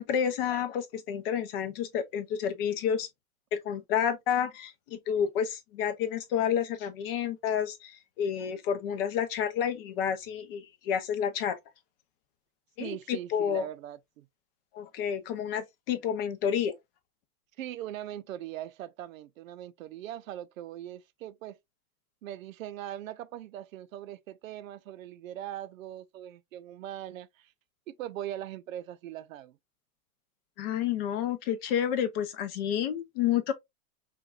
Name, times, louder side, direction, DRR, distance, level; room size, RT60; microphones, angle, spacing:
voice 1, 0.0-3.1 3.5-11.6 12.8-13.7 14.7-16.8 30.6-33.5, left 8 dB, 40° left, 0.9 m, -30 dB
voice 2, 12.8-14.3 17.6-21.6 22.2-27.5 27.9-29.6, right 12 dB, 60° right, 0.7 m, -40 dB
5.7 x 2.5 x 2.5 m
hypercardioid pair, 150°, 45 cm